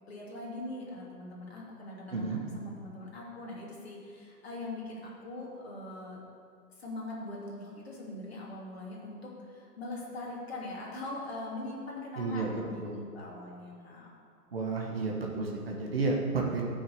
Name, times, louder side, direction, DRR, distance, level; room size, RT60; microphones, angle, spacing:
voice 1, 0.1-6.2 6.7-12.8 13.1-14.1, left 2 dB, 40° left, -4 dB, 2.8 m, -41 dB
voice 2, 2.1-2.4 12.2-13.0 14.5-16.6, right 3 dB, 35° right, -1 dB, 1.4 m, -32 dB
10.5 x 6.5 x 8.0 m, 2.3 s
hypercardioid pair, 180°, 48 cm